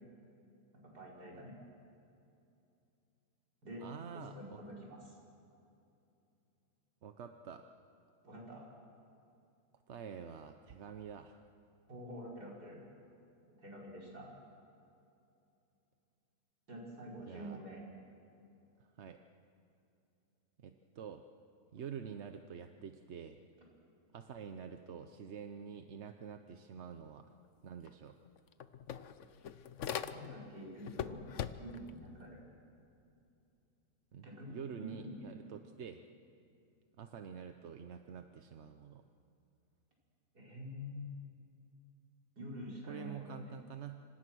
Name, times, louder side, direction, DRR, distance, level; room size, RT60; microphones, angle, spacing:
voice 1, 0.7-1.6 3.6-3.9 4.1-5.2 8.2-8.7 11.9-12.8 13.6-14.3 16.7-17.8 30.0-31.2 31.6-32.4 34.2-35.4 40.3-41.1 42.4-43.6, equal, 75° right, -4 dB, 6.0 m, -47 dB
voice 2, 3.8-4.6 7.0-7.6 9.9-11.5 17.2-17.6 18.8-19.2 20.6-21.2 21.7-23.4 24.1-27.3 27.6-28.2 34.1-36.0 37.0-39.0 42.9-44.0, right 7 dB, 50° right, 7 dB, 1.0 m, -47 dB
sound 1, 27.9-28.0 28.3-30.5 30.8-31.9, left 8 dB, 55° left, 1.0 m, -41 dB
26.5 x 26.0 x 6.3 m, 2.7 s
omnidirectional pair, 1.7 m